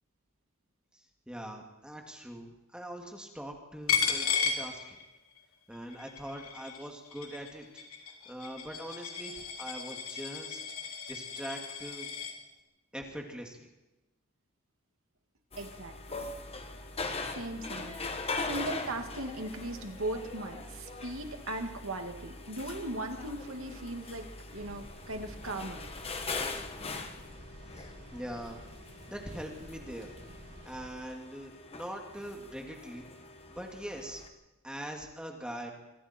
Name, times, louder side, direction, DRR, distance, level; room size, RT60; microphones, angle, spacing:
voice 1, 0.9-5.0 5.7-7.8 8.3-12.1 12.9-13.7 27.7-28.6 29.1-30.1 30.6-33.1 33.5-34.2 34.6-35.7, equal, 5° right, 1 dB, 2.6 m, -42 dB
Coin (dropping), 3.9-5.4 5.7-12.3, left 7 dB, 80° left, 3.5 m, -34 dB
sound 1, 15.5-34.3, left 3 dB, 30° left, 1.5 m, -41 dB
voice 2, 15.6-16.3 17.3-18.0 18.3-24.2 24.5-25.9, right 1 dB, 70° right, 4 dB, 2.4 m, -38 dB
sound 2, 24.5-30.9, equal, 50° right, 7.9 m, -51 dB
26.5 x 24.0 x 4.6 m, 1.0 s
head